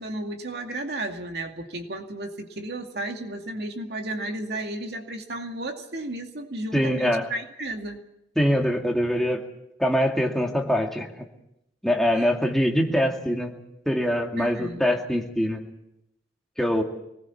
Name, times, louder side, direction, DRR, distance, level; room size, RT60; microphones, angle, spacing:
voice 1, 0.0-8.0 12.2-12.3 14.4-14.8, right 1 dB, 60° right, 4 dB, 2.4 m, -33 dB
voice 2, 6.7-7.3 8.4-9.4 9.8-11.2 11.8-13.5 13.9-15.6 16.6-16.8, equal, ahead, 1 dB, 2.3 m, -23 dB
24.5 x 20.0 x 7.2 m, 0.82 s
head